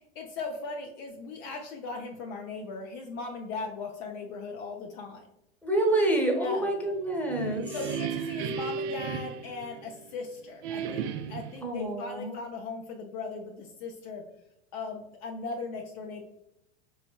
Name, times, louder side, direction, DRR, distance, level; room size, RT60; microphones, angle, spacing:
voice 1, 0.2-5.3 6.4-6.7 7.7-14.2 14.7-16.2, left 4 dB, 45° left, 2 dB, 0.6 m, -38 dB
voice 2, 5.6-7.7 11.6-12.4, right 1 dB, 5° left, 0 dB, 1.0 m, -27 dB
sound 1, 7.1-10.2 10.6-11.6, right 7 dB, 55° right, 0.5 m, -35 dB
4.1 x 3.1 x 2.2 m, 0.85 s
hypercardioid pair, 85°, 32 cm